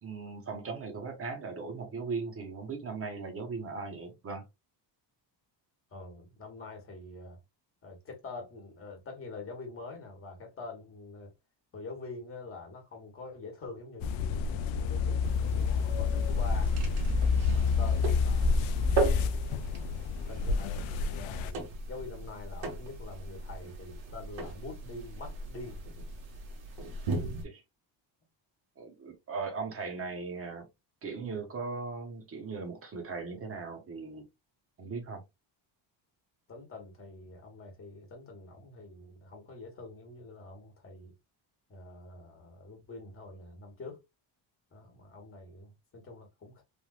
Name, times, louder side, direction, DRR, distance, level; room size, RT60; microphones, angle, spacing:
voice 1, 0.0-4.4 27.4-27.6 28.8-30.7 31.0-34.3 34.8-35.2, right 4 dB, 30° right, 1.0 m, -38 dB
voice 2, 5.9-7.4 7.8-11.3 11.7-16.7 17.5-18.6 19.0-19.4 20.3-25.8 36.5-41.1 41.7-44.0 44.7-46.6, left 3 dB, 30° left, 1.3 m, -45 dB
sound 1, 14.0-21.5, left 6 dB, 85° left, 0.5 m, -29 dB
sound 2, 15.2-27.4, right 1 dB, 75° right, 1.6 m, -34 dB
3.4 x 2.5 x 2.4 m
cardioid pair, 155°, 46 cm